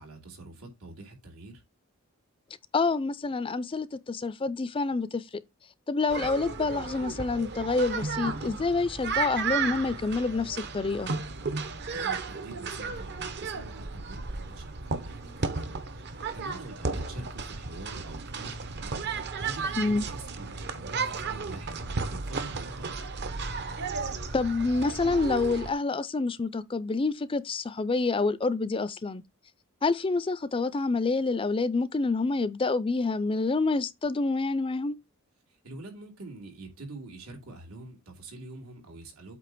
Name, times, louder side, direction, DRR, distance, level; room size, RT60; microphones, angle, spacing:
voice 1, 0.0-1.6 11.9-22.9 35.6-39.4, right 2 dB, 90° right, 2.9 m, -45 dB
voice 2, 2.7-5.2 5.9-11.1 19.8-20.0 24.3-29.2 29.8-35.0, left 3 dB, 25° left, 0.4 m, -27 dB
sound 1, 6.1-25.7, right 4 dB, 55° right, 0.9 m, -34 dB
8.3 x 2.9 x 5.9 m
head